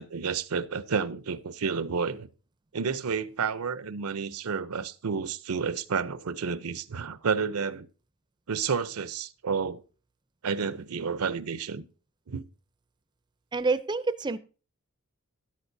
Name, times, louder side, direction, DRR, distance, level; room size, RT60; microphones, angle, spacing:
voice 1, 0.0-2.3 2.7-7.9 8.5-9.8 10.4-11.8 12.3-12.4, right 5 dB, 80° right, 0.6 m, -30 dB
voice 2, 13.5-14.4, right 3 dB, 20° right, 0.4 m, -27 dB
12.5 x 11.0 x 2.7 m
head